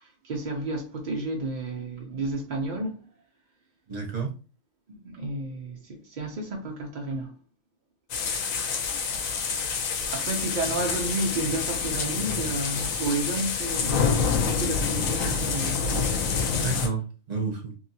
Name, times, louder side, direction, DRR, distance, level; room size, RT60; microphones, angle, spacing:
voice 1, 0.0-3.0 4.9-7.3 10.1-15.8, right 2 dB, 70° right, 0.4 m, -31 dB
voice 2, 3.9-4.3 8.2-8.6 16.6-17.7, right 5 dB, 35° right, 0.8 m, -31 dB
sound 1, 8.1-16.9, left 5 dB, 70° left, 1.0 m, -27 dB
2.7 x 2.7 x 2.7 m
omnidirectional pair, 1.5 m